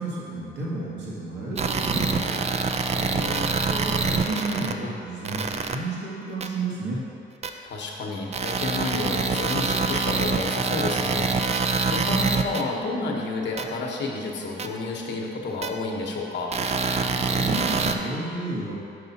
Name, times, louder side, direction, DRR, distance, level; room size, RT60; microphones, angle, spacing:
voice 1, 0.0-2.4 3.7-7.0 17.0-18.7, right 2 dB, 65° right, -6 dB, 1.6 m, -31 dB
sound 1, 1.6-4.7 5.2-5.7 6.4-6.5 7.4-7.5 8.3-12.6 13.6-13.7 14.6-14.7 15.6-15.7 16.5-17.9, right 4 dB, 35° right, 0.4 m, -25 dB
voice 2, 2.8-3.5 7.6-16.5, left 3 dB, 60° left, -1 dB, 1.1 m, -31 dB
6.6 x 5.5 x 4.1 m, 2.7 s
cardioid pair, 90°, 20 cm